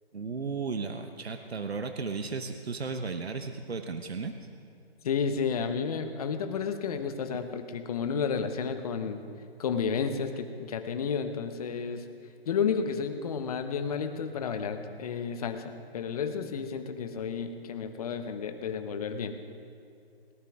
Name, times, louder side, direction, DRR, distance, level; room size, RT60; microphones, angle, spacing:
voice 1, 0.1-4.3, right 4 dB, 85° right, 7 dB, 1.1 m, -34 dB
voice 2, 5.0-9.2 9.6-12.0 12.4-19.3, left 6 dB, 35° left, 8 dB, 1.1 m, -31 dB
20.0 x 18.0 x 3.6 m, 2.4 s
hypercardioid pair, 150°, 31 cm